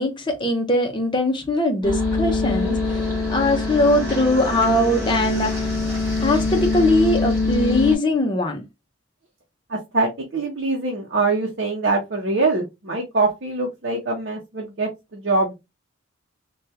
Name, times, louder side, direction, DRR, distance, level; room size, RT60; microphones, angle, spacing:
voice 1, 0.0-3.0 3.3-5.7 6.2-8.6, left 1 dB, 25° left, 0.7 m, -21 dB
sound 1, 1.8-8.0, left 3 dB, 15° right, 2.1 m, -24 dB
voice 2, 9.7-15.6, right 3 dB, 60° right, 0.7 m, -23 dB
3.4 x 2.3 x 2.7 m
head